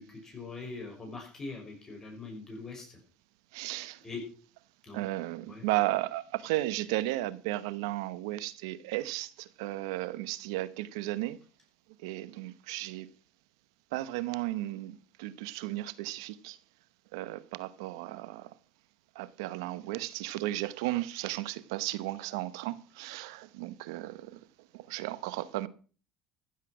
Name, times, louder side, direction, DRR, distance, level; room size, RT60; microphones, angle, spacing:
voice 1, 0.0-3.0 4.0-4.2 4.8-5.0 5.5-5.6, left 3 dB, 25° left, 6.1 m, -42 dB
voice 2, 3.5-4.0 4.9-11.4 12.0-13.1 13.9-16.6 17.1-18.5 19.1-24.4 24.7-25.7, right 17 dB, 90° right, 1.0 m, -34 dB
15.0 x 8.3 x 6.2 m
supercardioid pair, 105°, 2 cm